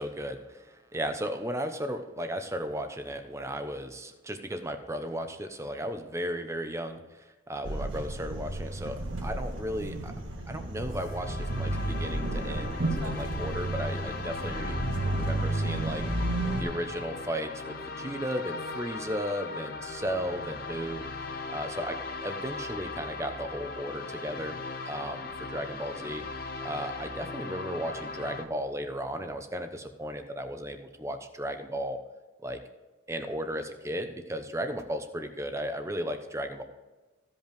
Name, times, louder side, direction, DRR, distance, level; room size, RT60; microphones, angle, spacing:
voice 1, 0.0-10.1 10.5-14.8 15.1-16.0 16.5-21.0 21.5-24.6 24.8-26.2 26.6-32.0 32.4-32.6 33.1-36.6, equal, 15° right, 7 dB, 0.8 m, -35 dB
sound 1, 7.6-16.6, right 1 dB, 80° right, 1.7 m, -32 dB
sound 2, 10.8-28.4, left 3 dB, 50° left, 0.9 m, -39 dB
15.0 x 5.4 x 5.2 m, 1.2 s
head